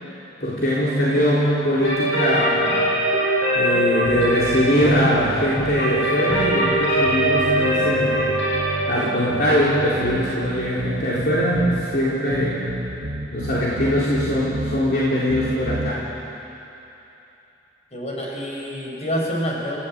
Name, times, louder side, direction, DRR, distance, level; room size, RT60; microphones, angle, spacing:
voice 1, 0.4-3.0 3.5-8.2 8.9-12.6 13.3-16.0, equal, 55° left, -7 dB, 3.8 m, -21 dB
sound 1, 1.8-11.5, right 1 dB, 80° left, 7.4 m, -23 dB
sound 2, 4.0-5.8 6.3-8.9 9.3-11.9 12.3-14.8 15.3-15.9, right 1 dB, 75° right, 1.7 m, -31 dB
voice 2, 17.9-19.8, equal, 40° left, -2 dB, 5.4 m, -27 dB
29.5 x 16.0 x 8.8 m, 2.9 s
head